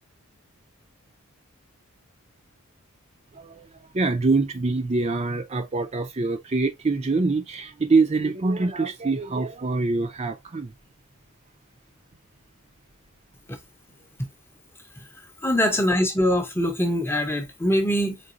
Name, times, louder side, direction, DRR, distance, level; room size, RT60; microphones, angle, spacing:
voice 1, 3.3-3.7 3.9-10.7, right 3 dB, 30° right, 0.4 m, -24 dB
voice 2, 15.4-18.2, equal, 10° left, 0.6 m, -23 dB
3.9 x 3.7 x 2.4 m
head